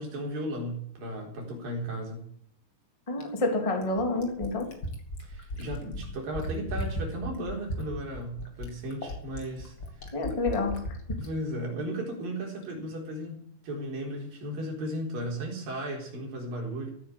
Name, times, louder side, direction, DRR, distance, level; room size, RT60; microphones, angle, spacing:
voice 1, 0.0-2.3 5.2-9.8 11.2-16.9, right 1 dB, 50° right, 0 dB, 5.5 m, -35 dB
voice 2, 3.1-4.7 10.1-11.2, left 2 dB, 10° left, 3 dB, 2.0 m, -29 dB
Fill (with liquid), 3.2-11.3 12.6-12.7, left 1 dB, 30° left, 2.8 m, -36 dB
15.5 x 9.6 x 8.8 m, 0.64 s
omnidirectional pair, 5.4 m